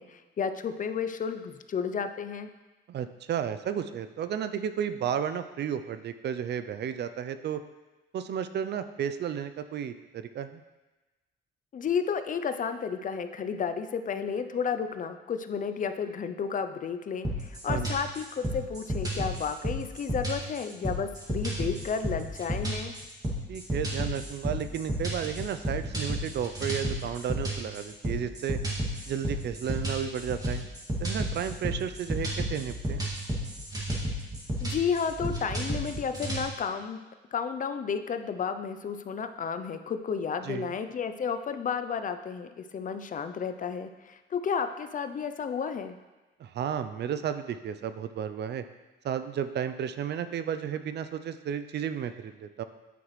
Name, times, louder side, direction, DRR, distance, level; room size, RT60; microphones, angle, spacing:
voice 1, 0.0-2.5 11.7-22.9 34.6-37.0 37.3-46.0, left 6 dB, 40° left, 9 dB, 0.5 m, -32 dB
voice 2, 2.9-7.6 8.1-10.6 17.7-17.9 23.5-28.6 29.1-30.6 31.0-33.0 40.4-40.7 46.4-48.6 49.0-52.6, right 8 dB, 60° right, 11 dB, 0.5 m, -33 dB
sound 1, 17.3-36.4, equal, 20° right, 2.1 m, -32 dB
9.2 x 5.7 x 3.2 m, 1.1 s
cardioid pair, 90°, 20 cm